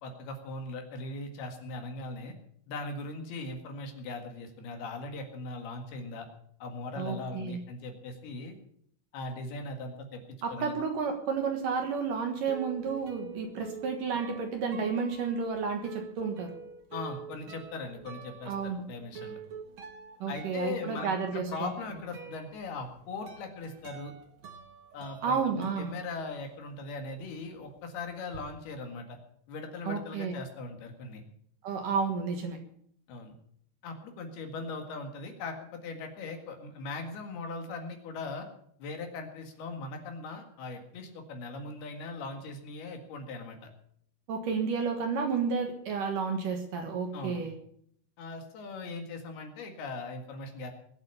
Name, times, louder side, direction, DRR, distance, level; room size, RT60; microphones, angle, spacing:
voice 1, 0.0-2.3 2.7-6.3 6.6-8.6 9.1-10.2 10.5-10.7 16.9-19.4 20.3-24.1 24.9-29.2 29.5-31.2 33.1-33.3 33.8-38.5 38.8-43.7 47.1-47.4 48.2-50.7, left 3 dB, 65° left, 4 dB, 3.7 m, -39 dB
voice 2, 7.0-7.6 10.4-16.5 18.5-18.8 20.2-21.7 25.2-25.9 29.9-30.4 31.6-32.6 44.3-47.5, right 5 dB, 60° right, 4 dB, 2.6 m, -31 dB
sound 1, 11.9-26.7 27.0-28.4, right 6 dB, 80° right, 1.1 m, -47 dB
21.0 x 8.0 x 6.9 m, 0.67 s
omnidirectional pair, 5.0 m